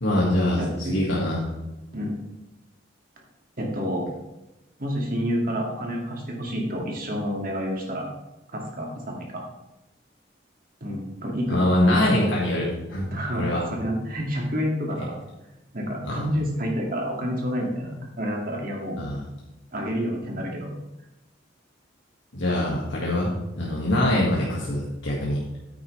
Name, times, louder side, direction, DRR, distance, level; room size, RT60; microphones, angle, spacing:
voice 1, 0.0-0.6 0.9-1.5 11.5-13.0 13.4-13.6 16.1-16.2 19.0-19.2 22.3-25.4, left 1 dB, 85° left, -5 dB, 1.9 m, -23 dB
voice 2, 0.6-1.2 1.9-2.1 3.6-4.0 4.8-8.1 8.5-9.4 10.8-12.0 13.1-15.2 15.7-19.0 19.7-20.7, equal, 50° right, 0 dB, 2.2 m, -29 dB
9.5 x 8.9 x 3.3 m, 0.96 s
head